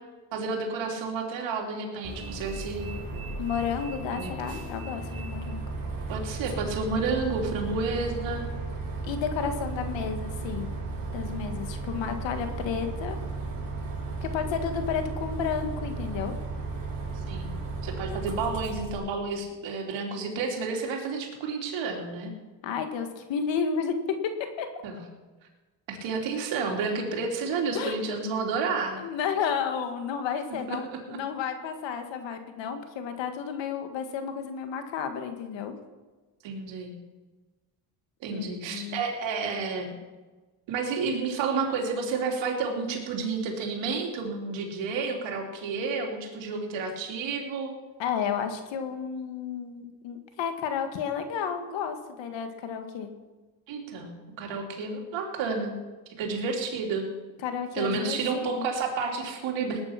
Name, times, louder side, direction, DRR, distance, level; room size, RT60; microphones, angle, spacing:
voice 1, 0.3-2.9 4.2-4.3 6.1-8.5 17.3-17.5 17.8-22.3 24.8-25.0 25.9-29.0 30.7-31.2 36.4-36.9 38.2-40.0 40.7-47.7 53.7-55.8 56.2-57.0 57.7-59.8, right 4 dB, 90° right, 1 dB, 3.2 m, -30 dB
Bus, 2.0-18.9, right 3 dB, 50° right, 5.4 m, -35 dB
voice 2, 3.4-5.6 9.0-10.7 11.1-13.2 14.2-16.3 22.6-23.9 24.2-24.3 24.6-24.7 27.7-28.0 29.0-30.9 31.1-35.7 38.3-39.0 48.0-53.1 57.4-58.7, left 7 dB, 85° left, 7 dB, 1.9 m, -32 dB
19.0 x 9.7 x 5.9 m, 1.2 s
cardioid pair, 100°, 44 cm